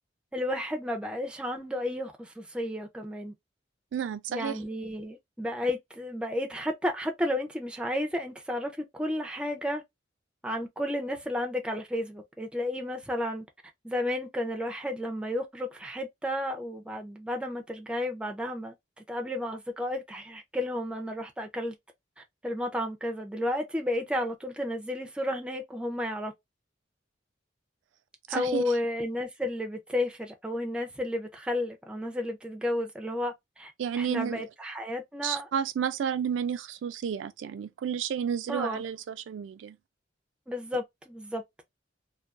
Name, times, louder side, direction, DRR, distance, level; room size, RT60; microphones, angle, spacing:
voice 1, 0.3-3.3 4.3-9.8 10.4-13.5 13.8-21.8 22.4-26.3 28.3-33.7 34.0-35.5 38.5-38.8 40.5-41.4, left 1 dB, 5° right, 0.4 m, -32 dB
voice 2, 3.9-4.6 28.3-28.8 33.8-34.4 35.2-39.8, right 8 dB, 80° right, 0.3 m, -31 dB
2.3 x 2.2 x 2.4 m
head